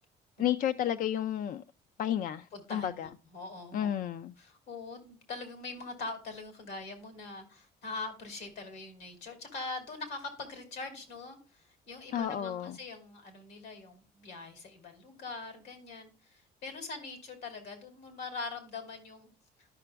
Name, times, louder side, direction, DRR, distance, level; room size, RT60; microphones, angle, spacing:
voice 1, 0.4-1.6 2.0-3.1 3.7-4.3 12.1-12.8, left 10 dB, 55° left, 0.4 m, -31 dB
voice 2, 2.5-4.1 4.4-19.3, left 3 dB, 80° left, 3.2 m, -43 dB
13.0 x 5.9 x 2.3 m
cardioid pair, 110°, 17 cm